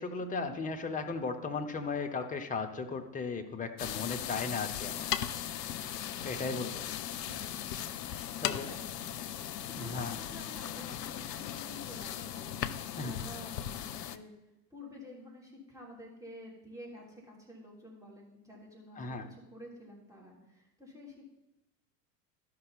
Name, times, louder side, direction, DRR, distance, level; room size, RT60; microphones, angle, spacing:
voice 1, 0.0-5.1 6.2-6.8 8.4-8.7 9.7-10.2 13.0-13.1 19.0-19.3, left 4 dB, 15° left, 5 dB, 0.9 m, -36 dB
sound 1, 3.8-14.2, left 10 dB, 75° left, 0.6 m, -38 dB
voice 2, 7.2-7.6 8.4-9.0 9.6-14.3 14.7-21.3, left 1 dB, 5° right, -3 dB, 3.2 m, -50 dB
13.0 x 5.5 x 4.1 m, 0.93 s
figure-of-eight pair, 80°, 49 cm